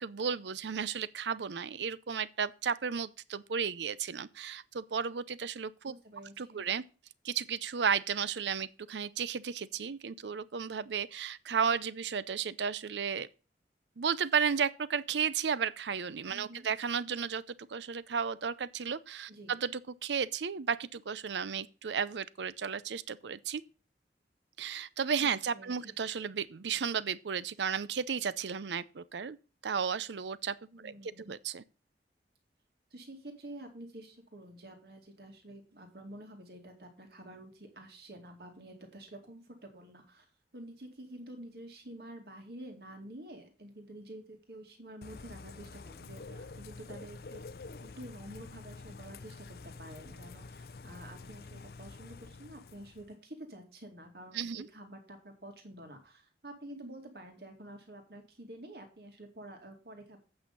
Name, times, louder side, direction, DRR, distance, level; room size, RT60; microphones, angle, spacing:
voice 1, 0.0-5.9 6.4-6.8 7.2-13.3 14.0-23.6 24.6-29.4 29.6-30.6 30.8-31.6 54.3-54.7, right 6 dB, 85° right, 0.6 m, -33 dB
voice 2, 5.9-6.6 16.3-16.7 19.3-19.5 25.2-25.9 30.7-31.3 32.9-40.3 40.5-47.4 47.8-60.2, right 1 dB, 65° right, 2.4 m, -49 dB
Bird / Rain, 45.0-53.2, left 3 dB, 60° left, 0.5 m, -48 dB
8.8 x 6.3 x 5.3 m
head